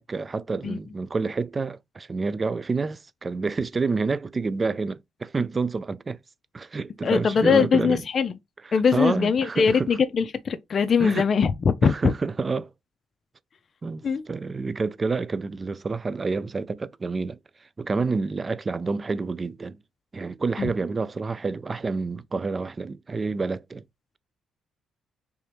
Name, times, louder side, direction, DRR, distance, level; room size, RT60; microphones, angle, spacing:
voice 1, 0.0-6.2 6.5-8.0 8.9-9.9 11.0-11.3 11.8-12.7 13.8-17.4 17.8-19.8 20.1-23.8, right 4 dB, 35° right, 0.3 m, -28 dB
voice 2, 7.0-8.4 8.7-12.1 14.0-14.2 20.6-20.7, left 6 dB, 50° left, 0.4 m, -22 dB
3.4 x 2.7 x 3.4 m
supercardioid pair, 70°, 0 cm